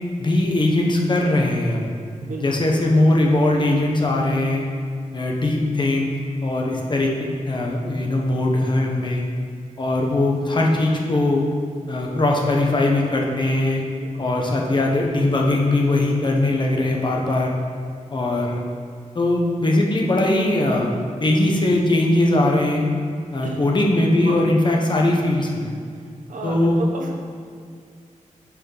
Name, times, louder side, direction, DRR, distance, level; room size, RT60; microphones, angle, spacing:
voice 1, 0.2-1.8 2.4-4.6 5.1-6.1 6.4-9.2 9.8-11.5 11.9-13.8 14.2-17.5 18.1-18.6 19.1-22.8 23.3-25.7 26.4-26.8, left 2 dB, 35° left, -1 dB, 1.2 m, -20 dB
voice 2, 2.2-2.6 14.0-14.3 23.4-23.8 24.2-24.4 26.3-27.3, right 3 dB, 85° right, 1 dB, 1.1 m, -32 dB
9.7 x 5.0 x 5.5 m, 2.1 s
wide cardioid pair, 160°, 13 cm